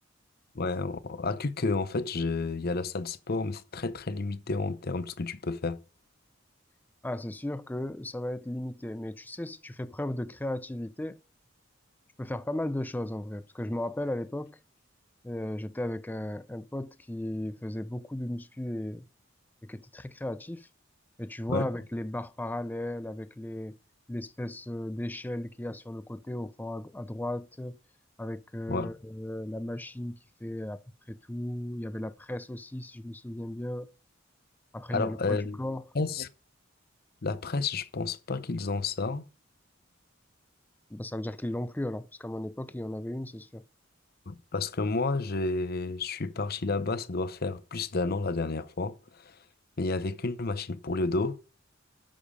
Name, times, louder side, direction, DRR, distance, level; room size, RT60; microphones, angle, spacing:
voice 1, 0.5-5.8 21.5-21.7 28.7-28.9 34.9-35.6 35.9-36.3 37.2-39.2 44.3-49.4 49.8-51.4, left 3 dB, 50° left, 0.7 m, -31 dB
voice 2, 7.0-11.2 12.2-14.6 15.2-19.0 19.6-20.7 21.2-23.8 24.1-27.8 28.2-30.8 31.1-33.9 34.7-35.9 40.9-43.6, left 1 dB, 10° left, 0.4 m, -35 dB
8.6 x 7.1 x 5.0 m
head